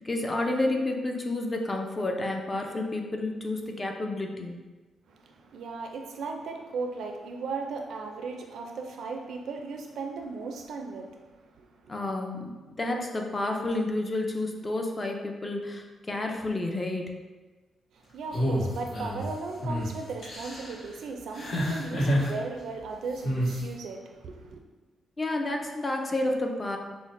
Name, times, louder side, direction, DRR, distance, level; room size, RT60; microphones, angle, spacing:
voice 1, 0.0-4.6 11.9-17.2 25.2-26.8, left 2 dB, 25° left, 2 dB, 0.5 m, -30 dB
voice 2, 5.1-11.9 17.9-24.6, right 4 dB, 80° right, 3 dB, 0.4 m, -37 dB
sound 1, 18.3-19.2 19.6-19.9 20.2-20.7 21.4-22.3 23.2-23.6, equal, 70° left, 1.5 m, -28 dB
5.7 x 2.1 x 2.5 m, 1.3 s
cardioid pair, 100°, 0 cm